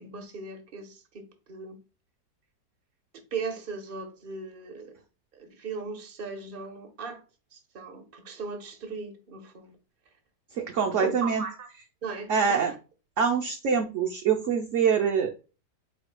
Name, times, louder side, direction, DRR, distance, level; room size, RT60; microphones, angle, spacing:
voice 1, 0.0-1.8 3.3-4.9 5.3-7.2 7.5-9.7 11.0-11.7 12.0-12.7, right 4 dB, 40° right, 0.9 m, -38 dB
voice 2, 10.6-11.4 12.3-12.7 13.2-15.3, right 6 dB, 65° right, 0.8 m, -25 dB
4.5 x 4.4 x 2.2 m
omnidirectional pair, 1.8 m